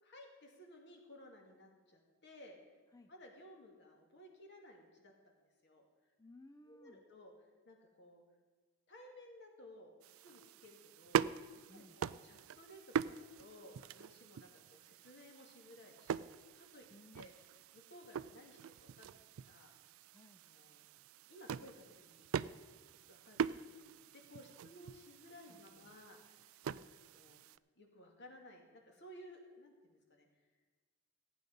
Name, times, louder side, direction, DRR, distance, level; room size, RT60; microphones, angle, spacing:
voice 1, 0.0-2.6 3.1-5.3 5.6-5.8 6.7-7.3 7.6-8.2 8.9-10.0 10.2-11.3 11.7-16.9 17.1-17.3 17.7-19.7 20.4-20.8 21.3-22.4 23.1-27.4 27.8-30.3, left 1 dB, 55° left, 2 dB, 2.2 m, -58 dB
voice 2, 6.2-7.0 11.7-12.0 16.9-17.3 20.1-20.4 25.5-26.0, left 1 dB, 15° left, 7 dB, 0.4 m, -60 dB
sound 1, 10.0-27.6, right 7 dB, 70° right, 0.3 m, -43 dB
15.5 x 9.3 x 5.3 m, 1.4 s
head